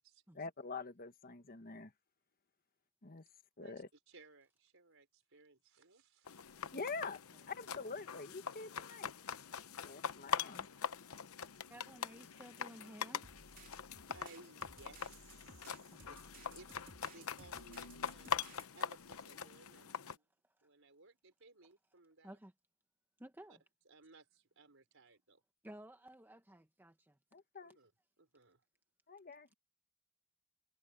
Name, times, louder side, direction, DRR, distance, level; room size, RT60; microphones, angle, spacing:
voice 1, 0.3-1.9 3.0-3.2 3.6-3.9 6.7-7.2 7.5-9.1 9.8-10.7 27.3-27.8 29.1-29.5, left 4 dB, 45° left, 1.4 m, -45 dB
voice 2, 3.6-6.4 14.1-16.2 16.5-16.7 17.1-20.2 20.6-22.4 23.5-23.6 23.9-25.4 27.6-27.9 28.2-28.6, right 3 dB, 65° right, 5.4 m, -61 dB
sound 1, 6.3-20.2, left 7 dB, 90° left, 0.9 m, -43 dB
voice 3, 6.7-7.1 10.4-10.9 11.7-13.4 15.9-16.1 20.4-20.6 22.2-22.5 23.2-23.6 25.6-27.2, right 1 dB, 10° right, 1.0 m, -56 dB
sound 2, 13.2-18.7, right 3 dB, 45° right, 3.3 m, -59 dB
head